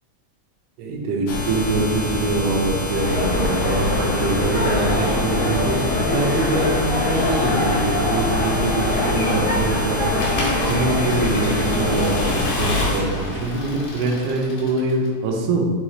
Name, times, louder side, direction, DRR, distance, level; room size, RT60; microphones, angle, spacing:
voice 1, 0.8-10.0 10.7-15.7, right 2 dB, 75° right, -1 dB, 1.4 m, -24 dB
sound 1, 1.3-13.0, left 2 dB, 90° left, 2.2 m, -27 dB
sound 2, 2.9-12.4, left 1 dB, 40° left, 0.7 m, -23 dB
Accelerating revving vroom / Mechanisms, 10.2-15.1, left 2 dB, 70° left, 1.7 m, -28 dB
6.8 x 2.4 x 3.0 m, 1.5 s
omnidirectional pair, 3.4 m